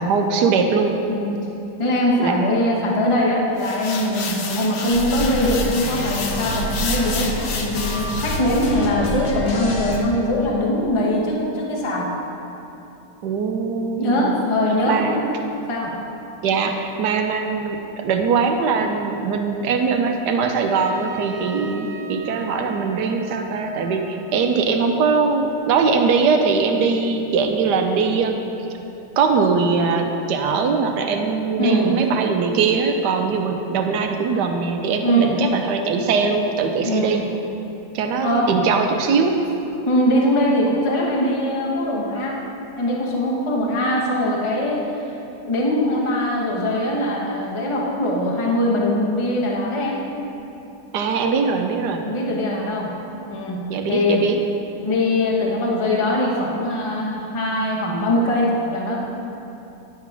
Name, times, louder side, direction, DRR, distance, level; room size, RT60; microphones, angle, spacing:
voice 1, 0.0-1.0 2.2-2.4 13.2-14.3 14.9-15.2 16.4-28.4 29.2-37.2 37.9-39.4 50.9-52.1 53.7-54.4, right 5 dB, 80° right, 5 dB, 1.2 m, -21 dB
voice 2, 1.8-7.3 7.6-12.1 14.0-15.3 15.7-15.9 31.6-31.9 35.0-35.4 36.8-37.2 38.2-38.5 39.4-39.6 39.8-42.4 42.8-45.0 45.4-50.0 52.0-52.9 53.2-54.2 54.8-59.0, left 1 dB, 25° left, -3 dB, 0.8 m, -21 dB
sound 1, 3.6-8.7, left 4 dB, 60° left, 0.7 m, -30 dB
sound 2, 4.9-10.0, equal, 75° left, 1.5 m, -28 dB
Trumpet, 20.6-25.4, right 4 dB, 45° right, 0.4 m, -40 dB
10.0 x 3.8 x 5.9 m, 2.9 s
omnidirectional pair, 1.8 m